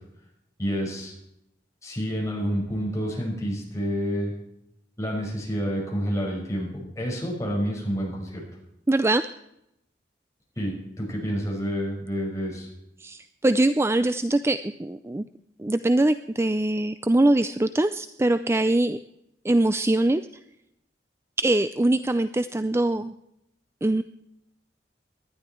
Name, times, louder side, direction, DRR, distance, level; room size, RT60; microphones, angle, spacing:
voice 1, 0.6-1.1 1.8-4.3 5.0-8.4 10.6-12.7, equal, 20° left, -2 dB, 5.7 m, -29 dB
voice 2, 8.9-9.2 13.0-15.2 15.6-19.0 19.4-20.2 21.4-23.1 23.8-24.0, right 1 dB, 15° right, 12 dB, 0.4 m, -22 dB
18.5 x 12.0 x 4.5 m, 0.79 s
head